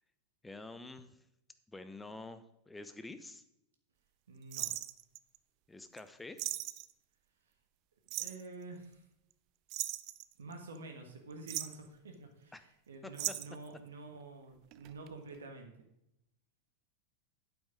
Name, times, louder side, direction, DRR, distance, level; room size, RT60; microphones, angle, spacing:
voice 1, 0.4-1.2 1.7-3.4 5.7-6.6 12.5-12.6 13.0-13.1, left 2 dB, 10° left, 11 dB, 0.9 m, -48 dB
voice 2, 4.3-4.7 8.1-9.1 10.4-15.7, right 3 dB, 65° right, 4 dB, 1.7 m, -49 dB
sound 1, 4.5-5.4 6.0-6.1 6.4-6.9 8.1-8.5 9.7-10.8 11.3-11.9 13.1-13.7 14.7-15.1 15.3-15.4, right 16 dB, 40° right, 0.5 m, -38 dB
8.9 x 8.1 x 5.0 m, 0.81 s
figure-of-eight pair, 90°, 0 cm